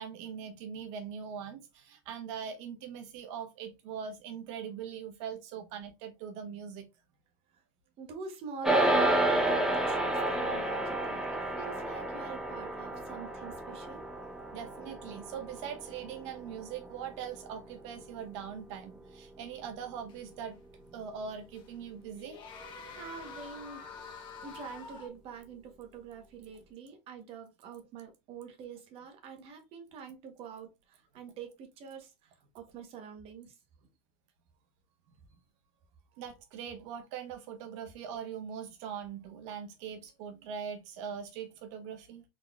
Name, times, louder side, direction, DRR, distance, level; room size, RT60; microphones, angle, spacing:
voice 1, 0.0-6.9 14.5-20.6 20.9-22.4 36.2-42.2, right 7 dB, 60° right, 1.0 m, -41 dB
voice 2, 8.0-14.1 23.0-23.8 24.4-32.1 32.5-33.5, right 6 dB, 35° right, 1.0 m, -45 dB
sound 1, 8.6-18.2, right 1 dB, 5° right, 0.7 m, -31 dB
sound 2, 20.1-20.2 21.6-21.7 22.1-25.1, left 4 dB, 30° left, 1.1 m, -46 dB
3.9 x 3.7 x 2.3 m
supercardioid pair, 170°, 17 cm